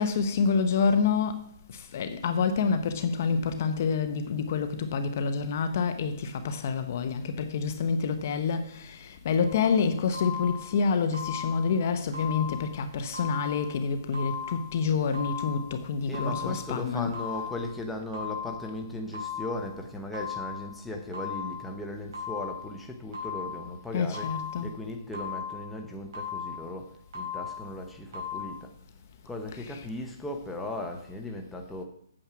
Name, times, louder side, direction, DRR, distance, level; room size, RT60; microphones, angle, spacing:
voice 1, 0.0-1.4 1.7-17.2 23.9-24.7 29.5-29.8, left 5 dB, 35° left, 0.7 m, -28 dB
sound 1, 9.4-9.7 10.1-10.7 11.1-11.7 12.1-12.7 13.1-13.7 14.1-14.7 15.1-15.7 16.1-16.7 17.1-17.7 18.1-18.7 19.1-19.7 20.1-20.7 21.1-21.7 22.1-22.7 23.1-23.7 24.1-24.7 25.1-25.7 26.1-26.7 27.1-27.7 28.1-28.4, left 7 dB, 55° right, 5.0 m, -37 dB
voice 2, 16.1-28.7 29.2-31.8, left 1 dB, ahead, 0.9 m, -37 dB
8.8 x 7.2 x 6.1 m
hypercardioid pair, 170°, 2 cm